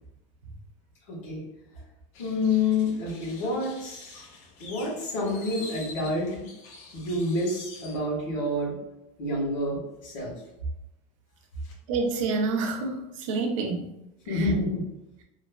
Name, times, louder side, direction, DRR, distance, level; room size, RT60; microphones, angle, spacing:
voice 1, 1.1-1.4 2.2-4.2 4.6-6.4 6.9-8.8 9.2-10.3 14.3-14.8, left 2 dB, 90° left, -4 dB, 1.4 m, -28 dB
sound 1, 2.1-8.0, left 3 dB, 45° left, 0.5 m, -46 dB
voice 2, 11.9-13.9 14.3-14.5, right 3 dB, 85° right, 4 dB, 0.5 m, -28 dB
3.0 x 2.0 x 2.2 m, 0.86 s
cardioid pair, 165°, 16 cm